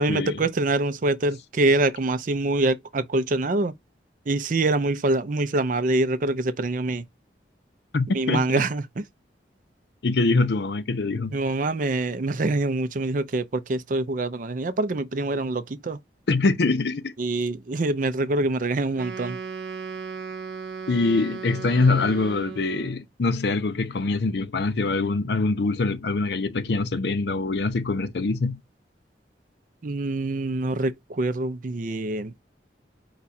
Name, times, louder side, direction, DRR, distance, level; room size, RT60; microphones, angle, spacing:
voice 1, 0.0-3.7 4.3-7.0 8.1-9.0 11.3-16.0 17.2-19.4 29.8-32.3, right 2 dB, 50° right, 0.5 m, -25 dB
voice 2, 7.9-8.4 10.0-11.4 16.3-17.1 20.9-28.6, left 3 dB, 70° left, 0.6 m, -24 dB
Wind instrument woodwind instrument, 18.9-23.0, right 5 dB, 65° right, 0.8 m, -36 dB
4.9 x 2.3 x 4.1 m
head